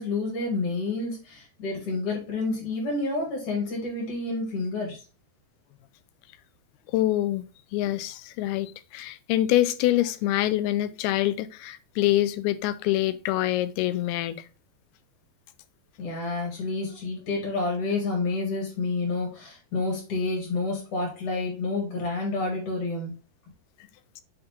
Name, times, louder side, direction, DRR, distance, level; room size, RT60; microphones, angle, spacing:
voice 1, 0.0-5.0 16.0-23.1, left 3 dB, 55° left, -1 dB, 3.4 m, -29 dB
voice 2, 6.9-7.4 7.7-14.5, left 14 dB, 85° left, 14 dB, 2.4 m, -25 dB
7.8 x 3.9 x 3.5 m, 0.33 s
omnidirectional pair, 4.5 m